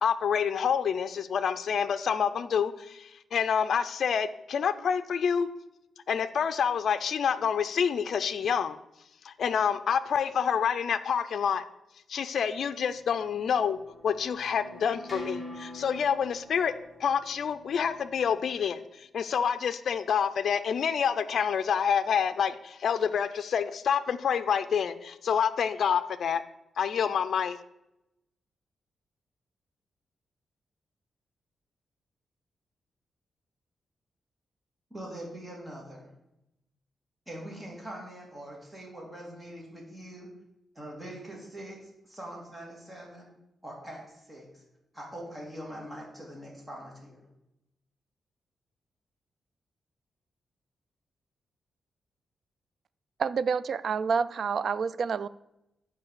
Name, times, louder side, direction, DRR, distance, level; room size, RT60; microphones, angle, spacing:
voice 1, 0.0-5.5 6.1-8.8 9.2-11.6 12.1-13.8 14.0-16.7 17.0-26.4 26.8-27.6, left 7 dB, 65° left, 0.5 m, -27 dB
sound 1, 12.8-18.6, equal, 5° left, 2.8 m, -46 dB
voice 2, 34.9-36.1 37.3-40.3 40.7-43.3 43.6-44.6 44.9-47.2, right 1 dB, 15° right, 2.7 m, -43 dB
voice 3, 53.2-55.3, right 6 dB, 55° right, 0.3 m, -28 dB
9.6 x 4.8 x 6.8 m
cardioid pair, 120°, 0 cm